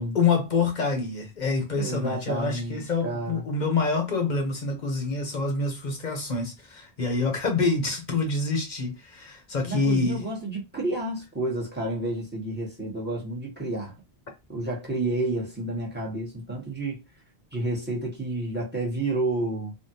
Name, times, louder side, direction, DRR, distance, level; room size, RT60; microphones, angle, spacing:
voice 1, 0.1-10.4, left 4 dB, 50° left, 0.9 m, -26 dB
voice 2, 1.7-3.4 9.6-13.9 14.5-17.0 17.5-19.7, right 2 dB, 10° right, 0.8 m, -30 dB
3.5 x 2.1 x 2.7 m
omnidirectional pair, 1.1 m